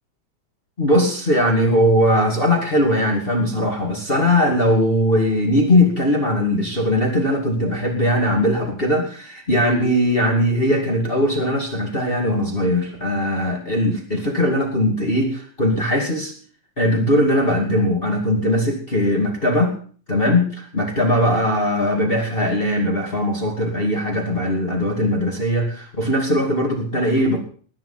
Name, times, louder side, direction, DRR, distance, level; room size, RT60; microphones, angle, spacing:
voice 1, 0.8-16.3 16.8-19.8 20.1-27.4, left 1 dB, 20° left, 1 dB, 2.5 m, -20 dB
20.0 x 9.4 x 5.9 m, 0.43 s
omnidirectional pair, 3.4 m